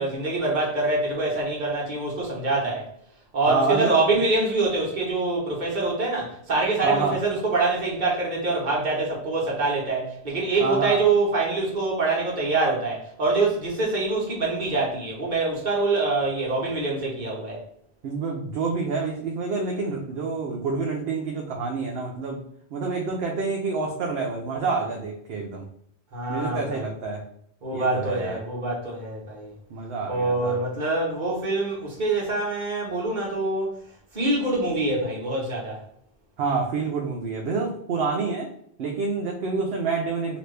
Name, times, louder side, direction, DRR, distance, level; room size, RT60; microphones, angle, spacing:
voice 1, 0.0-2.9 3.3-17.6 26.1-26.8 27.6-29.5 30.1-33.7 34.1-35.8, right 3 dB, 45° right, -3 dB, 1.2 m, -25 dB
voice 2, 3.5-4.1 6.8-7.2 10.6-11.0 18.0-22.4 22.7-25.6 26.3-27.2 27.7-28.4 29.7-30.6 36.4-38.5 38.8-40.4, right 4 dB, 70° right, 0 dB, 0.8 m, -27 dB
2.9 x 2.5 x 3.2 m, 0.68 s
omnidirectional pair, 1.1 m